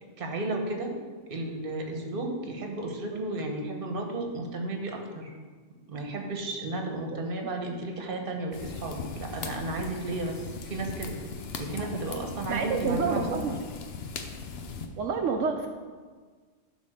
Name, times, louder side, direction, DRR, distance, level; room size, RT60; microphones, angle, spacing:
voice 1, 0.2-0.9 1.2-5.3 5.9-11.2 11.5-13.5, right 2 dB, 45° right, 3 dB, 1.2 m, -33 dB
sound 1, 8.5-14.9, left 4 dB, 60° left, 0.9 m, -38 dB
voice 2, 12.5-13.6 15.0-15.7, right 5 dB, 75° right, 3 dB, 1.0 m, -29 dB
10.0 x 3.6 x 6.4 m, 1.5 s
omnidirectional pair, 1.3 m